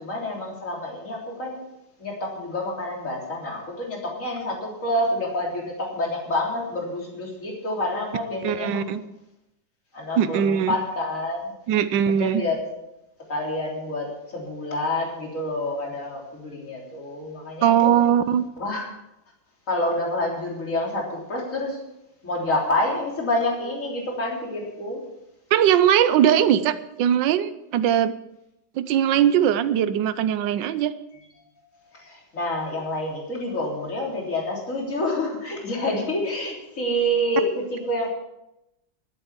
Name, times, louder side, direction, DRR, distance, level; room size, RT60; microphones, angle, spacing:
voice 1, 0.0-1.6 2.0-8.9 9.9-11.5 12.2-12.7 13.3-17.9 18.6-18.9 19.7-21.8 22.2-25.1 31.7-38.1, left 1 dB, 40° left, -2 dB, 3.9 m, -28 dB
voice 2, 8.4-9.0 10.2-10.7 11.7-12.4 17.6-18.4 25.5-28.1 28.8-30.9, right 9 dB, 75° right, 12 dB, 1.4 m, -20 dB
12.0 x 10.5 x 7.3 m, 0.88 s
omnidirectional pair, 2.1 m